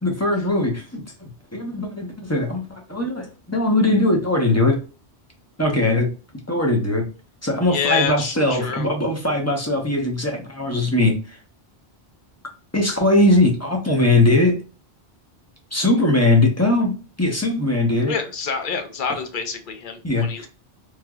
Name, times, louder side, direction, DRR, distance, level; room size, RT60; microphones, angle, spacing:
voice 1, 0.0-4.8 5.6-6.1 6.5-7.0 7.4-11.4 12.7-14.6 15.7-18.1 20.0-20.5, left 2 dB, 20° left, 1 dB, 0.6 m, -20 dB
voice 2, 7.7-8.9 18.1-20.5, left 6 dB, 55° left, 7 dB, 0.7 m, -27 dB
3.2 x 2.8 x 2.3 m, 0.34 s
omnidirectional pair, 1.1 m